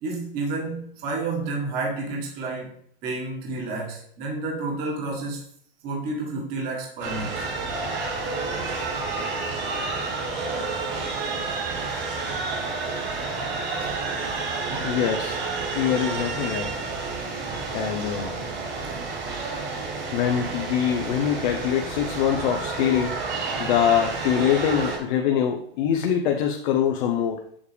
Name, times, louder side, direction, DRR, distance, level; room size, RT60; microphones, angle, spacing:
voice 1, 0.0-2.8 3.0-5.4 5.8-7.4 14.7-14.9 18.8-18.9, right 3 dB, 30° right, -1 dB, 1.7 m, -30 dB
sound 1, 7.0-25.0, right 3 dB, 50° right, 2.6 m, -30 dB
voice 2, 14.8-15.4 15.7-16.7 17.2-17.3 17.7-18.4 19.5-19.6 20.1-27.4, left 9 dB, 45° left, 3 dB, 0.8 m, -24 dB
7.2 x 6.7 x 3.4 m, 0.65 s
hypercardioid pair, 140°, 30 cm